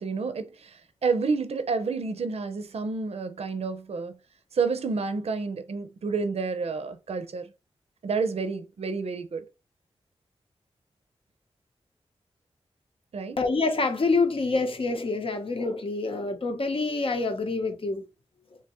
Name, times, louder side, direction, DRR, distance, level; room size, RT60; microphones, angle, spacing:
voice 1, 0.0-4.2 4.5-7.5 8.0-9.5 13.1-13.4, right 4 dB, 70° right, 0.5 m, -29 dB
voice 2, 13.4-18.0, left 3 dB, 55° left, 0.7 m, -26 dB
3.4 x 2.8 x 2.9 m
wide cardioid pair, 70°, 11 cm